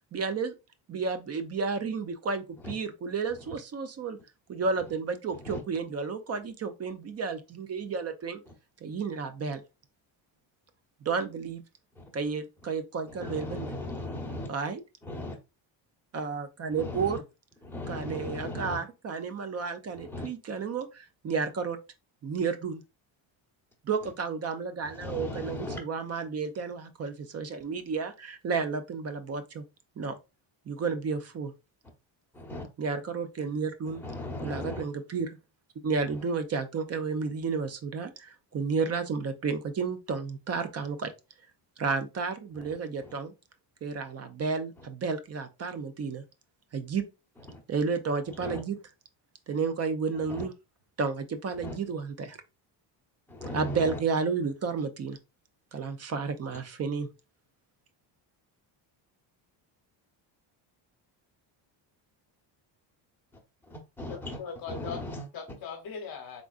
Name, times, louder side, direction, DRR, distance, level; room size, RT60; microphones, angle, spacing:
voice 1, 0.1-0.5 0.9-4.2 4.5-8.4 8.8-9.6 11.0-11.6 12.1-13.8 14.5-14.8 16.1-17.2 17.9-21.8 22.2-22.8 23.8-29.6 30.0-30.2 30.7-31.5 32.8-34.0 34.4-35.4 35.8-41.1 41.8-43.3 43.8-46.2 46.7-47.0 47.7-48.8 49.5-50.5 51.0-52.4 53.5-55.2 55.7-57.1, right 5 dB, 35° right, 0.5 m, -32 dB
voice 2, 13.2-14.5 15.1-15.3 16.8-17.1 17.7-18.8 20.1-20.3 25.0-25.8 32.3-32.6 34.0-34.8 47.5-47.6 48.4-48.6 50.3-50.4 51.6-51.7 53.3-54.0 64.0-64.2 64.7-65.2, left 2 dB, 5° left, 1.0 m, -37 dB
voice 3, 64.1-65.0 65.3-66.4, left 6 dB, 50° left, 0.9 m, -39 dB
3.6 x 3.6 x 2.4 m
cardioid pair, 130°, 48 cm